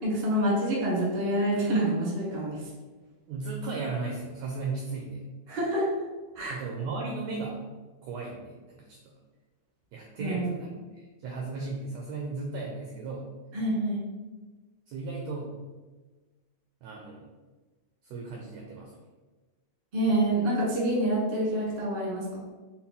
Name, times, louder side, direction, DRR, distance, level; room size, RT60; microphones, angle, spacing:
voice 1, 0.0-2.6 5.5-5.8 6.3-6.6 10.2-10.7 13.5-14.0 19.9-22.2, right 1 dB, 45° right, -6 dB, 0.7 m, -27 dB
voice 2, 3.3-5.2 6.5-7.6 8.0-9.0 9.9-10.8 11.2-13.3 14.9-15.6 16.8-17.3 18.0-18.9, right 3 dB, 85° right, 0 dB, 1.5 m, -35 dB
5.4 x 2.0 x 4.1 m, 1.3 s
omnidirectional pair, 3.5 m